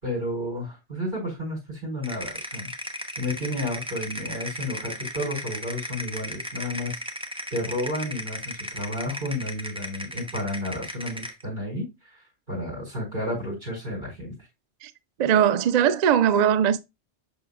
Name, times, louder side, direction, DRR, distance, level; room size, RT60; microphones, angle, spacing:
voice 1, 0.0-2.7 3.2-7.0 7.5-14.4, left 1 dB, 40° right, 4.7 m, -32 dB
sound 1, 2.0-11.4, equal, 5° right, 0.6 m, -35 dB
voice 2, 15.2-16.8, right 9 dB, 85° right, 0.3 m, -20 dB
7.2 x 5.6 x 2.3 m
omnidirectional pair, 1.3 m